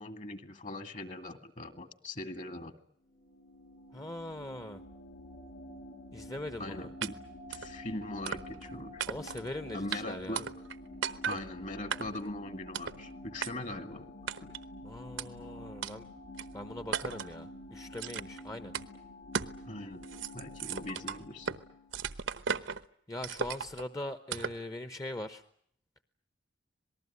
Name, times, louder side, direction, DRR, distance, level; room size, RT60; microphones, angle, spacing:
voice 1, 0.0-2.7 6.6-7.2 7.5-9.0 9.7-10.5 11.3-14.1 14.4-14.5 19.7-20.0 20.3-21.5, left 1 dB, 40° left, 11 dB, 2.1 m, -40 dB
sound 1, 3.1-22.0, left 1 dB, 80° left, 5.0 m, -49 dB
voice 2, 3.9-4.8 6.1-6.9 9.0-10.4 14.8-16.1 16.5-18.7 23.1-25.4, left 1 dB, 20° left, 11 dB, 1.0 m, -41 dB
sound 2, 7.0-7.1 7.5-7.7 8.3-8.7 9.0-9.5 9.9-10.0 10.4-10.8 11.0-11.4 11.9-12.3 12.7-13.0 13.4-13.5 14.3-14.6 15.2-15.3 15.8-15.9 16.4-16.5 16.9-17.3 18.0-18.4 18.7-18.9 19.3-19.6 19.9-21.6 21.9-22.8 23.2-23.8 24.3-24.6, right 6 dB, 75° right, 1.1 m, -36 dB
26.5 x 19.5 x 9.6 m, 0.68 s
head